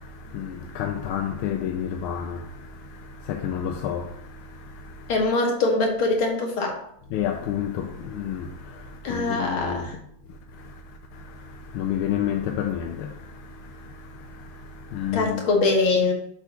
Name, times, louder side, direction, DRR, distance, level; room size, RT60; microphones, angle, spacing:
voice 1, 0.0-5.1 7.1-9.9 10.6-10.7 11.1-15.4, left 9 dB, 90° left, 1.5 m, -31 dB
voice 2, 5.1-6.8 9.0-10.0 15.1-16.1, left 3 dB, 75° left, 2.4 m, -23 dB
7.2 x 3.9 x 5.8 m
omnidirectional pair, 2.3 m